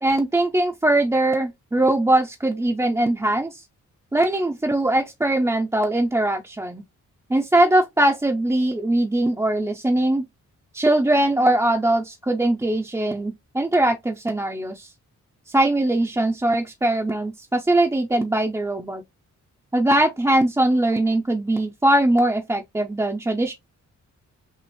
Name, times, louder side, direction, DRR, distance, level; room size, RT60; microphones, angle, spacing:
voice 1, 0.0-3.6 4.1-6.8 7.3-10.3 10.7-14.9 15.5-19.0 19.7-23.5, right 1 dB, 10° right, 0.4 m, -21 dB
6.0 x 2.4 x 3.0 m
wide cardioid pair, 155°, 30 cm